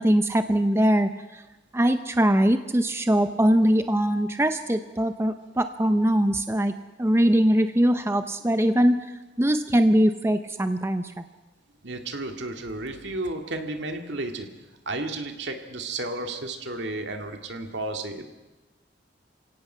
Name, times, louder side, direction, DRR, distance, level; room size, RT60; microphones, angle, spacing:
voice 1, 0.0-1.4 1.7-6.7 7.0-9.1 9.4-11.2, equal, 15° right, 9 dB, 0.6 m, -22 dB
voice 2, 11.8-14.5 14.9-18.2, right 2 dB, 70° right, 5 dB, 2.2 m, -32 dB
28.0 x 17.0 x 5.6 m, 1.1 s
head